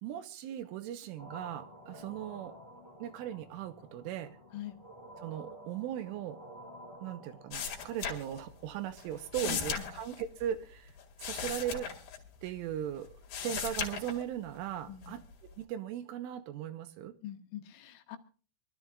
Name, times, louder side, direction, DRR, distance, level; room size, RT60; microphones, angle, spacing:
voice 1, 0.0-2.5 3.0-4.4 5.2-6.4 7.0-10.9 11.2-11.9 12.4-13.1 13.4-15.2 15.6-17.1, right 10 dB, 80° right, 9 dB, 3.3 m, -38 dB
sound 1, 1.2-10.2, equal, 10° right, 0.8 m, -52 dB
sound 2, 7.5-8.7 9.0-12.8 13.1-14.6 15.0-15.6, left 7 dB, 55° left, 3.6 m, -38 dB
voice 2, 9.4-9.9 14.9-15.2 17.2-18.2, left 11 dB, 80° left, 6 dB, 3.7 m, -43 dB
25.0 x 12.5 x 2.5 m, 0.39 s
omnidirectional pair, 6.0 m